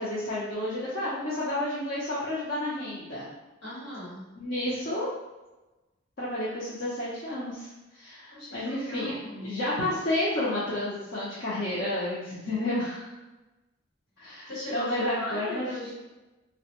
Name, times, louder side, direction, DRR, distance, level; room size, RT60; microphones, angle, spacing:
voice 1, 0.0-3.3 4.4-5.1 6.2-9.1 9.4-13.1 14.2-15.9, left 1 dB, 50° left, -10 dB, 0.6 m, -31 dB
voice 2, 3.6-4.2 8.3-9.6 14.5-15.9, left 1 dB, 70° left, -6 dB, 1.3 m, -38 dB
2.9 x 2.1 x 2.9 m, 1.1 s
head